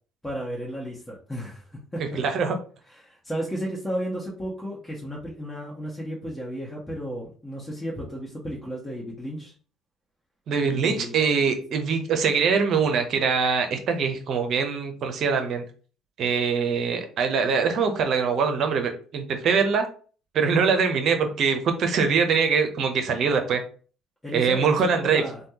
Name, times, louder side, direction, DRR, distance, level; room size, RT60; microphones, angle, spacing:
voice 1, 0.2-1.6 1.9-2.0 2.9-9.5 10.6-11.1 24.2-25.4, equal, 15° left, -4 dB, 1.2 m, -33 dB
voice 2, 2.1-2.6 10.5-15.6 16.2-19.9 20.3-23.6 24.3-25.2, right 5 dB, 60° right, 6 dB, 0.7 m, -23 dB
3.3 x 2.2 x 2.8 m, 0.40 s
hypercardioid pair, 60°, 0 cm